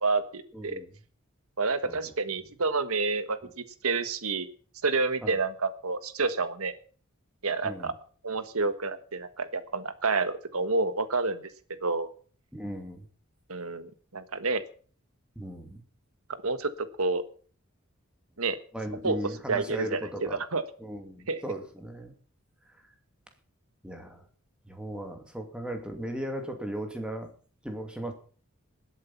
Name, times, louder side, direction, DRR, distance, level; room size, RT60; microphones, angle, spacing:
voice 1, 0.0-0.8 1.6-4.5 4.8-6.7 7.4-7.9 8.2-11.5 11.8-12.1 13.5-14.6 16.4-17.2 18.4-18.6 19.0-19.2 19.5-20.6 21.3-21.4, right 3 dB, 80° right, 12 dB, 1.5 m, -29 dB
voice 2, 0.5-0.9 1.8-2.1 5.2-5.4 7.6-7.9 12.5-13.1 15.4-15.8 18.7-20.4 20.8-22.1 22.8-22.9 23.8-24.2 24.6-27.3 27.6-28.1, equal, 5° right, 4 dB, 2.6 m, -37 dB
20.0 x 8.3 x 5.8 m, 0.43 s
head